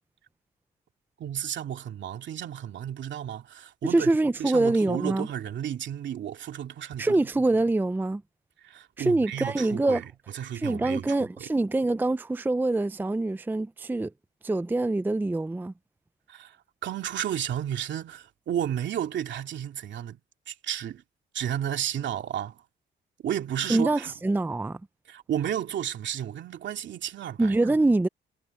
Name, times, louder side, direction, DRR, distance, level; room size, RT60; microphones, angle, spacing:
voice 1, 1.2-4.1 4.4-7.2 8.6-10.1 10.3-11.5 16.3-16.6 16.8-20.2 20.5-21.0 21.3-22.6 23.2-24.1 25.1-27.6, right 10 dB, 65° right, 2.7 m, -32 dB
voice 2, 3.9-5.3 7.0-8.2 9.0-10.0 10.5-14.1 14.4-15.7 23.7-24.8 27.4-28.1, right 2 dB, 10° right, 0.5 m, -25 dB
cardioid pair, 90°, 20 cm